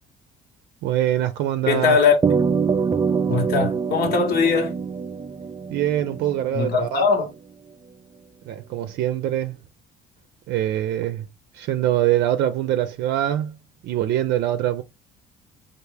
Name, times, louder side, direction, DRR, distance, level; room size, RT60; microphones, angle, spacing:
voice 1, 0.8-2.0 5.7-7.0 8.5-9.6 10.5-11.2 11.5-13.6 13.8-14.8, right 12 dB, 75° right, 0.5 m, -23 dB
voice 2, 1.7-2.1 3.3-4.7 6.5-7.3, left 5 dB, 65° left, 1.2 m, -20 dB
sound 1, 2.2-6.8, right 5 dB, 20° right, 0.4 m, -24 dB
4.5 x 2.5 x 3.3 m
cardioid pair, 110°, 17 cm